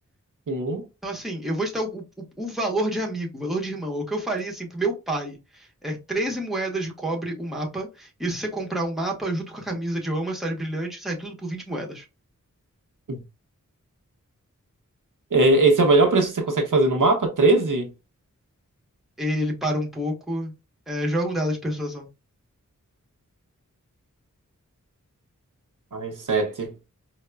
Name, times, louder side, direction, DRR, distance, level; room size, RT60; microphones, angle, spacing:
voice 1, 0.5-0.8 13.1-13.2 15.3-17.9 25.9-26.7, right 2 dB, 75° right, 0.8 m, -20 dB
voice 2, 1.0-2.0 2.4-12.1 19.2-20.5 20.9-22.1, right 1 dB, ahead, 1.0 m, -28 dB
4.7 x 2.1 x 2.2 m
wide cardioid pair, 60°, 32 cm